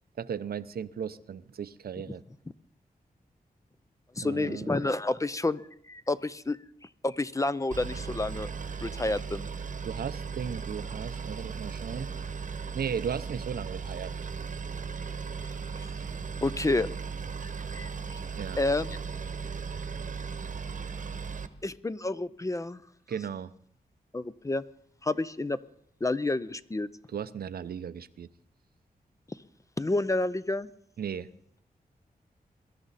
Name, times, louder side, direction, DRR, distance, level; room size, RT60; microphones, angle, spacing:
voice 1, 0.2-2.2 4.2-4.7 9.8-12.1 12.7-14.2 18.3-18.6 23.1-23.5 27.1-28.3 31.0-31.3, right 7 dB, 85° right, 14 dB, 0.6 m, -36 dB
voice 2, 4.2-5.6 5.9-6.6 7.0-8.5 8.8-9.5 15.8-15.9 16.4-16.9 17.4-18.2 18.6-19.0 21.6-22.8 24.1-24.6 25.0-25.6 26.0-26.9 29.8-30.7, left 2 dB, 20° left, 15 dB, 0.5 m, -29 dB
Boat Water vehicle, 7.7-21.5, right 5 dB, 55° right, 1.0 m, -37 dB
22.5 x 12.5 x 4.1 m, 0.69 s
wide cardioid pair, 95°, 15 cm